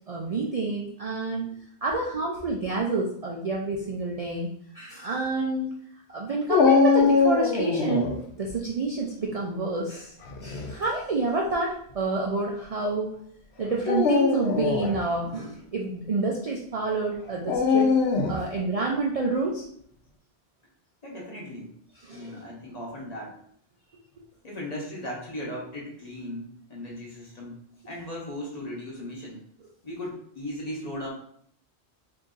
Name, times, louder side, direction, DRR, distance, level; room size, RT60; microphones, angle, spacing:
voice 1, 0.1-1.5 1.8-4.5 4.7-5.7 6.1-10.1 10.4-13.1 13.6-17.9 18.3-19.6 22.0-22.3, right 3 dB, 50° right, -3 dB, 0.4 m, -28 dB
Dog, 6.5-8.2 10.2-10.7 11.5-11.6 13.8-15.0 17.5-18.5, left 5 dB, 80° left, 0.8 m, -22 dB
voice 2, 21.0-21.7 22.1-23.4 24.4-27.6 27.8-29.4 29.8-31.1, left 1 dB, 40° left, -3 dB, 0.9 m, -37 dB
2.9 x 2.6 x 3.7 m, 0.64 s
omnidirectional pair, 1.1 m